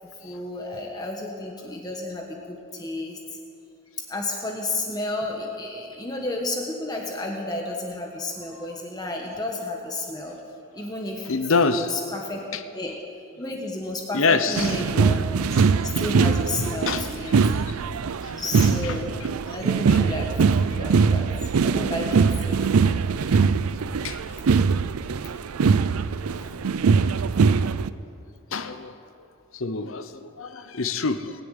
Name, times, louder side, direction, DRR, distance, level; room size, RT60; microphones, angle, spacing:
voice 1, 0.2-3.4 4.1-10.4 10.7-11.4 11.6-12.4 12.7-13.0 13.4-15.2 15.5-17.4 18.2-19.2 19.5-21.3 21.6-22.7 26.4-26.5, left 2 dB, 20° left, 0 dB, 1.3 m, -32 dB
voice 2, 11.2-11.9 12.5-12.6 14.1-14.8 16.6-17.1 17.7-17.8 19.9-20.0 20.7-20.8 24.0-24.2 28.5-28.9 29.5-31.4, left 4 dB, 70° left, 10 dB, 0.9 m, -26 dB
sound 1, 14.6-27.9, right 5 dB, 90° right, 0.4 m, -22 dB
20.0 x 7.0 x 9.0 m, 2.6 s
head